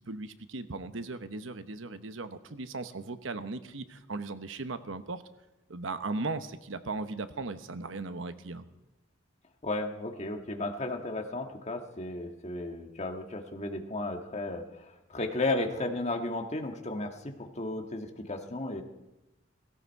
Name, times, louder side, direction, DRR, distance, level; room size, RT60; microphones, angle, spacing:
voice 1, 0.0-5.2 5.7-8.7, right 3 dB, 90° right, 11 dB, 1.0 m, -37 dB
voice 2, 9.6-18.8, left 2 dB, 35° left, 4 dB, 1.7 m, -34 dB
17.0 x 17.0 x 4.7 m, 0.98 s
head